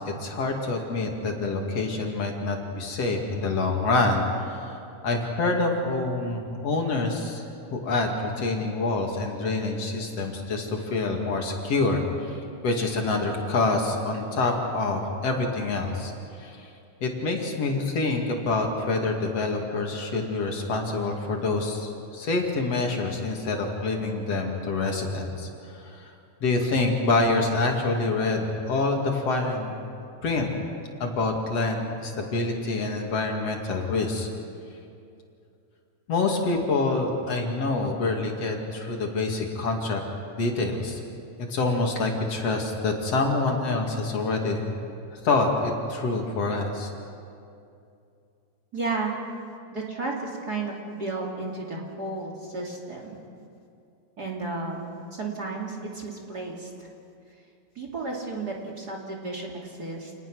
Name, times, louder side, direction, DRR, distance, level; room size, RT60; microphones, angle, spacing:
voice 1, 0.0-4.8 5.0-7.4 7.7-16.1 16.4-16.7 17.0-26.1 26.4-29.7 30.2-30.5 31.0-34.3 36.1-40.0 40.4-41.0 41.5-44.8 45.1-46.9, left 3 dB, 60° left, 1 dB, 3.3 m, -26 dB
voice 2, 48.7-49.1 49.7-53.2 54.2-56.9 57.7-60.1, right 3 dB, 35° right, 0 dB, 3.0 m, -33 dB
28.5 x 20.0 x 6.2 m, 2.5 s
omnidirectional pair, 3.3 m